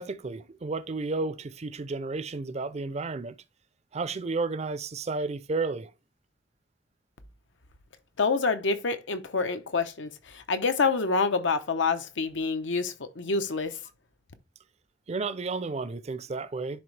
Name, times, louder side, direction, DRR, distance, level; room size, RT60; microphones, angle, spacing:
voice 1, 0.0-3.4 3.9-5.9 15.1-16.8, right 3 dB, 35° right, 0.5 m, -32 dB
voice 2, 8.2-13.8, left 4 dB, 85° left, 0.9 m, -27 dB
10.5 x 3.5 x 3.2 m
head